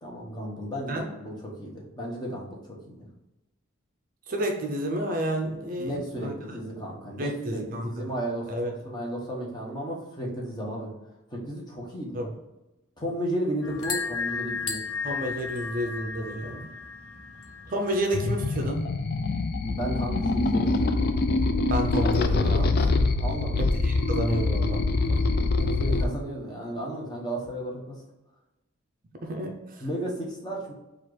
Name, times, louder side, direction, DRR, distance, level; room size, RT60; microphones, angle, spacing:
voice 1, 0.0-2.6 2.9-3.1 5.8-10.9 11.3-12.2 13.0-14.8 19.6-21.3 23.2-23.6 25.6-28.0 29.8-30.7, right 1 dB, 20° left, -3 dB, 1.0 m, -34 dB
voice 2, 4.3-6.6 7.2-7.9 8.5-8.7 12.1-12.3 15.0-16.7 17.7-18.9 21.7-22.8 23.6-25.2 29.2-29.8, right 1 dB, 40° right, 3 dB, 0.5 m, -30 dB
sound 1, 13.6-18.6, left 5 dB, 85° left, 0.7 m, -35 dB
sound 2, 18.1-26.0, left 3 dB, 45° left, 0.3 m, -24 dB
4.4 x 2.4 x 4.6 m, 0.99 s
head